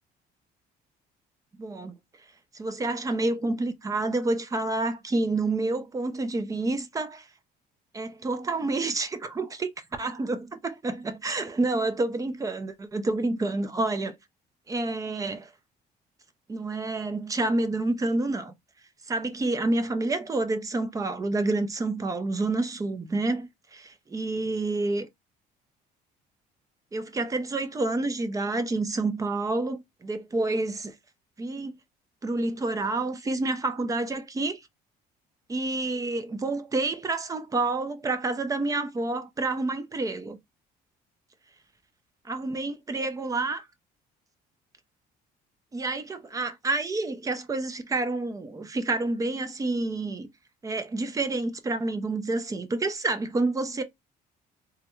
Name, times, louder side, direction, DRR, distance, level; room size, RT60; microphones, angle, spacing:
voice 1, 1.6-1.9 2.5-7.3 7.9-9.7 10.0-14.1 14.7-15.5 16.5-18.5 19.1-25.1 26.9-30.9 31.4-31.8 32.2-34.6 35.5-40.4 42.2-43.7 45.7-50.3 50.6-53.8, right 2 dB, 20° right, 0.5 m, -28 dB
3.4 x 2.2 x 3.0 m
cardioid pair, 110°, 17 cm